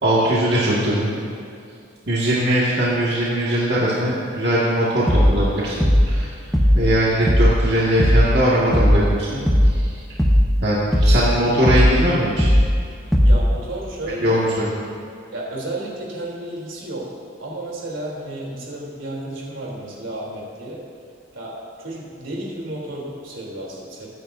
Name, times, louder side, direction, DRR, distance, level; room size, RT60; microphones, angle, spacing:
voice 1, 0.0-1.1 2.1-6.3 6.7-9.4 9.7-9.9 10.6-12.5 14.2-14.8, right 1 dB, 55° right, -7 dB, 2.0 m, -20 dB
sound 1, 5.1-5.4 5.8-6.2 6.5-6.9 7.3-7.6 8.0-8.4 8.7-9.1 9.5-9.8 10.2-10.6 10.9-11.3 11.7-12.0 12.4-12.8 13.1-13.5, equal, ahead, 0.9 m, -16 dB
voice 2, 13.2-14.4 15.3-17.0 17.4-20.8 21.3-24.1, right 1 dB, 85° right, -4 dB, 3.4 m, -32 dB
23.0 x 10.0 x 2.7 m, 2.4 s
head